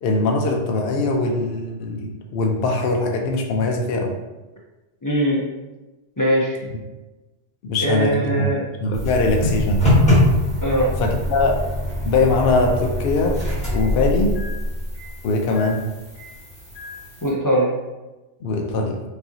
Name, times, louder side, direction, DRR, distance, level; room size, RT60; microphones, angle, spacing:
voice 1, 0.0-4.2 7.6-8.5 8.8-9.9 11.0-11.6 12.0-13.4 13.7-14.4 15.2-15.9 18.4-19.0, left 2 dB, 65° left, 2 dB, 0.7 m, -21 dB
voice 2, 5.0-5.4 6.2-6.6 7.8-8.7 10.6-10.9 17.2-17.7, equal, 30° left, -3 dB, 0.3 m, -20 dB
sound 1, 8.9-17.3, left 1 dB, 5° left, 1.2 m, -23 dB
4.9 x 2.6 x 2.8 m, 1.1 s
omnidirectional pair, 1.2 m